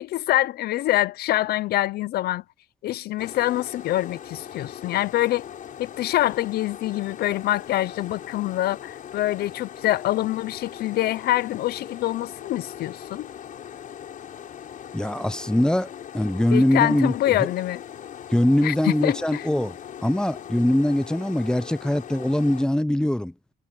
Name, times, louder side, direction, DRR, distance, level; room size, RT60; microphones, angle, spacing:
voice 1, 0.0-2.4 2.8-5.4 5.8-13.3 16.5-17.8 18.6-19.5, left 15 dB, 70° left, 0.8 m, -25 dB
sound 1, 3.2-22.6, left 9 dB, 50° left, 6.0 m, -40 dB
voice 2, 14.9-17.1 18.3-23.3, left 1 dB, 5° left, 0.8 m, -22 dB
cardioid pair, 110°, 17 cm